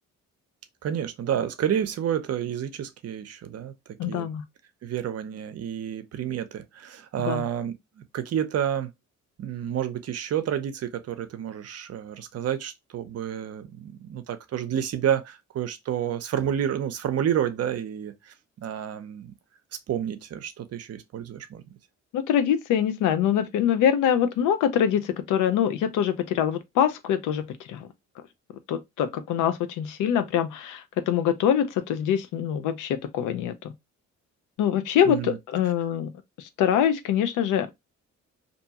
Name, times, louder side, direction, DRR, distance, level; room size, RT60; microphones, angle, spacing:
voice 1, 0.8-3.7 4.1-4.3 4.8-8.9 9.4-19.3 19.9-21.6 35.0-35.4, right 9 dB, 55° right, 0.6 m, -30 dB
voice 2, 4.0-4.4 7.2-7.4 22.1-27.9 28.7-33.7 34.6-36.1 36.6-37.7, left 9 dB, 90° left, 0.6 m, -24 dB
2.7 x 2.2 x 2.8 m
cardioid pair, 90°, 30 cm